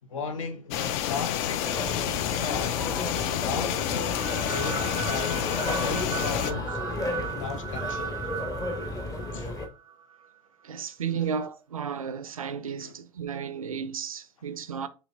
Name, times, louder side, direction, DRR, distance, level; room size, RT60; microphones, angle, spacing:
voice 1, 0.1-5.5 5.8-6.8 7.1-8.2 9.3-9.5 11.1-11.2 12.8-12.9, left 5 dB, 65° left, 0.8 m, -37 dB
sound 1, 0.7-6.5, left 10 dB, 45° left, 0.4 m, -29 dB
sound 2, 1.6-9.7, left 2 dB, 20° left, 0.8 m, -34 dB
sound 3, 4.2-10.3, right 8 dB, 20° right, 0.4 m, -37 dB
voice 2, 10.6-14.9, right 7 dB, 80° right, 0.4 m, -33 dB
6.1 x 3.1 x 2.5 m
figure-of-eight pair, 75°, 18 cm